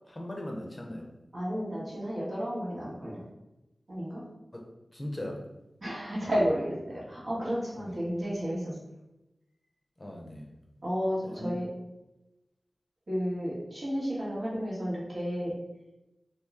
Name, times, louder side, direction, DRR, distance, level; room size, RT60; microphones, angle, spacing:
voice 1, 0.1-1.1 4.5-5.4 6.1-6.3 7.8-7.9 10.0-10.5 11.2-11.6, left 1 dB, 20° left, 0 dB, 0.6 m, -39 dB
voice 2, 1.3-3.2 3.9-4.2 5.8-8.8 10.8-11.7 13.1-15.5, equal, 65° right, -7 dB, 1.5 m, -32 dB
3.0 x 2.7 x 3.5 m, 0.97 s
wide cardioid pair, 75°, 0 cm